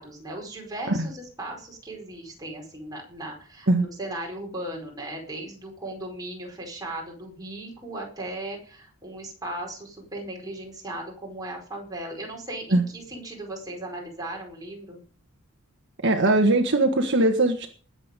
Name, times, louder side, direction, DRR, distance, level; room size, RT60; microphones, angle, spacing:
voice 1, 0.0-15.0, right 1 dB, 20° right, -1 dB, 4.8 m, -37 dB
voice 2, 16.0-17.7, right 2 dB, 55° right, 4 dB, 1.4 m, -20 dB
20.0 x 7.9 x 5.3 m, 0.43 s
head